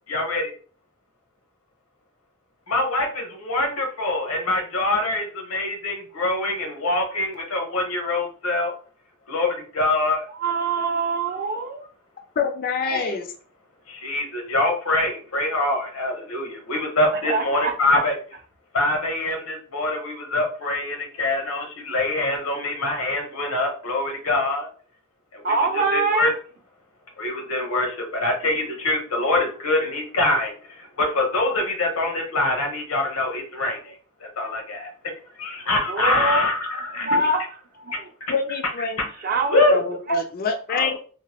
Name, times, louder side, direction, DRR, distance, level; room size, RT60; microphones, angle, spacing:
voice 1, 0.1-0.5 2.7-8.7 9.3-10.3 12.9-13.0 13.9-18.2 18.7-24.7 25.3-25.6 25.9-26.3 27.2-35.1 35.4-37.1 39.5-39.8 40.7-41.0, left 2 dB, 85° left, 2 dB, 0.9 m, -24 dB
voice 2, 10.3-11.9 12.9-13.2 17.2-18.0 25.4-26.3 35.9-36.5 36.9-38.1 39.2-39.8, right 3 dB, 45° right, 3 dB, 0.5 m, -25 dB
voice 3, 12.4-13.3 38.3-39.0 39.7-41.0, left 5 dB, 40° left, 4 dB, 0.4 m, -25 dB
2.9 x 2.1 x 2.9 m, 0.41 s
head